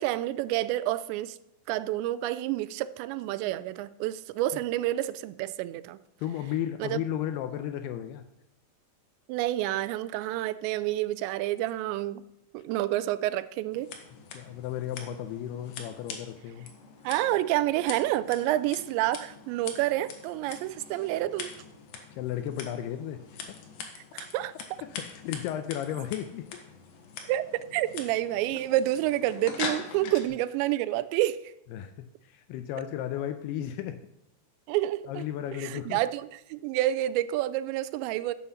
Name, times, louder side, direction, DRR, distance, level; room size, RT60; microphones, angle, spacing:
voice 1, 0.0-1.4 1.7-6.0 6.8-7.0 9.3-12.2 12.5-13.9 17.0-21.5 24.1-24.5 27.3-27.4 27.7-31.5 34.7-35.3 35.6-38.3, right 14 dB, 85° right, 2.8 m, -29 dB
voice 2, 6.2-8.2 14.3-16.7 22.1-23.2 23.5-23.6 24.8-26.5 30.0-30.1 31.7-31.9 32.2-34.0 35.1-36.0, left 11 dB, 80° left, 2.4 m, -34 dB
Scissors, 13.7-30.3, left 5 dB, 65° left, 2.8 m, -43 dB
9.8 x 7.6 x 7.1 m
omnidirectional pair, 5.1 m